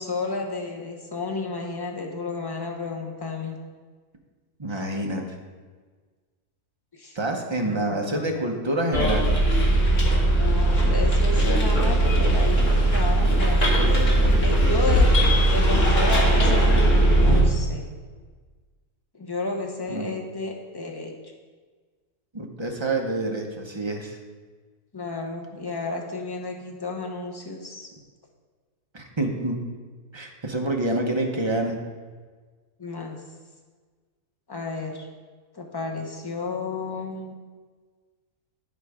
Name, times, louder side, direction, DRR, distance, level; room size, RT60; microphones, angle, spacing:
voice 1, 0.0-3.5 7.0-7.2 7.6-8.5 10.4-15.1 15.5-17.8 19.1-21.1 24.9-27.9 32.8-33.2 34.5-35.0 35.5-37.3, left 3 dB, 20° left, 1 dB, 0.8 m, -32 dB
voice 2, 4.6-5.2 7.1-9.3 19.9-20.1 22.3-24.2 28.9-29.6 30.1-31.8, right 2 dB, 25° right, 2 dB, 0.7 m, -27 dB
Bus, 8.9-17.4, right 1 dB, 55° left, 1.7 m, -19 dB
11.0 x 4.7 x 4.9 m, 1.5 s
omnidirectional pair, 1.6 m